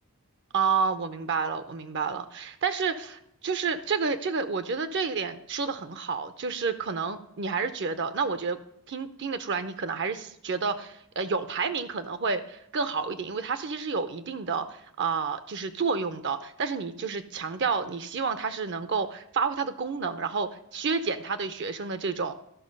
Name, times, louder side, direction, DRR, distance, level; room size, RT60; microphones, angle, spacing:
voice 1, 0.5-8.6 8.9-22.4, right 5 dB, 55° right, 11 dB, 0.6 m, -30 dB
12.0 x 5.6 x 5.2 m, 0.77 s
head